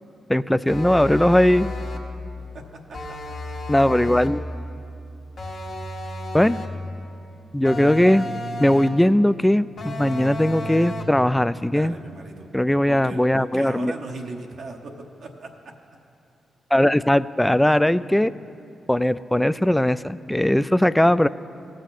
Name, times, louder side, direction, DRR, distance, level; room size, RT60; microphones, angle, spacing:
voice 1, 0.3-1.7 3.7-4.4 6.3-6.6 7.5-8.3 8.6-11.9 12.5-13.9 16.7-18.3 18.9-21.3, left 1 dB, 10° left, 15 dB, 0.3 m, -19 dB
sound 1, 0.7-2.1 2.9-4.4 5.4-6.8 7.6-9.1 9.8-11.2, left 1 dB, 65° left, 1.2 m, -32 dB
voice 2, 2.5-3.4 11.7-12.5 12.9-15.7, right 3 dB, 70° right, 1 dB, 0.9 m, -38 dB
16.5 x 6.4 x 4.1 m, 2.5 s
supercardioid pair, 40°, 0 cm